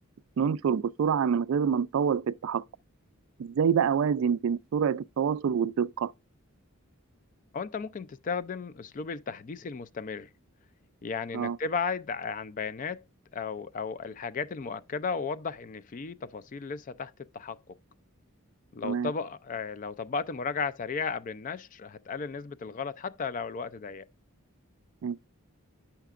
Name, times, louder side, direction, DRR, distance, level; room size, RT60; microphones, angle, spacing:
voice 1, 0.4-2.6 3.4-6.1 11.3-11.6 18.8-19.1 25.0-25.2, right 7 dB, 65° right, 0.3 m, -26 dB
voice 2, 7.5-10.3 11.0-13.0 13.3-17.8 18.7-24.1, left 5 dB, 35° left, 0.3 m, -35 dB
9.1 x 5.8 x 2.4 m
head